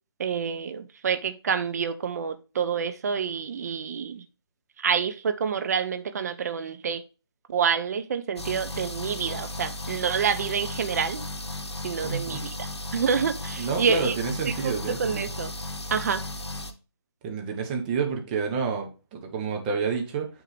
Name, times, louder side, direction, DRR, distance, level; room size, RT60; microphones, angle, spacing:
voice 1, 0.2-4.3 4.8-7.0 7.5-11.2 11.8-12.7 12.9-14.1 14.4-15.5 15.9-16.2, right 6 dB, 40° right, 0.7 m, -28 dB
sound 1, 8.4-16.7, left 2 dB, 80° left, 1.0 m, -35 dB
voice 2, 12.0-12.4 13.6-15.3 17.2-20.3, right 5 dB, 20° right, 1.1 m, -29 dB
9.3 x 3.7 x 3.2 m
figure-of-eight pair, 150°, 14 cm